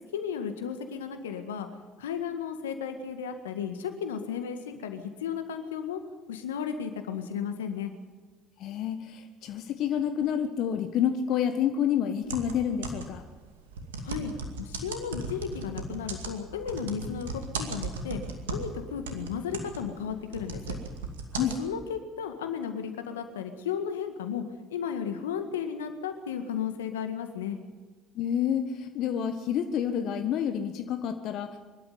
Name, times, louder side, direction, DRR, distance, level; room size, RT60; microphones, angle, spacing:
voice 1, 0.1-1.7 2.0-6.0 6.3-7.9 14.0-14.3 14.6-18.2 18.5-20.8 21.6-24.4 24.7-27.6, left 7 dB, 85° left, 7 dB, 1.8 m, -34 dB
voice 2, 8.6-13.2 21.3-21.6 28.1-31.6, left 9 dB, 60° left, 7 dB, 1.4 m, -29 dB
sound 1, 12.2-13.3 13.7-18.8 19.1-21.6, right 3 dB, 85° right, 2.4 m, -36 dB
24.0 x 12.5 x 9.4 m, 1.3 s
hypercardioid pair, 60°, 0 cm